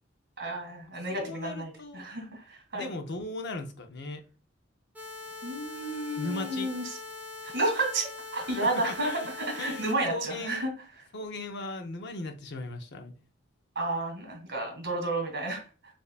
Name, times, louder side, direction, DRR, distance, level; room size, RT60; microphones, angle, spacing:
voice 1, 0.4-2.9 5.4-6.9 7.5-8.1 8.3-10.7 13.8-15.6, right 2 dB, 55° right, 2.1 m, -31 dB
voice 2, 1.1-2.1 2.7-4.2 6.2-6.7 8.4-8.7 9.0-9.3 9.6-10.7 11.1-13.1, left 2 dB, 60° left, 0.7 m, -38 dB
sound 1, 4.9-9.9, left 3 dB, 10° right, 0.7 m, -42 dB
6.7 x 2.7 x 2.4 m
head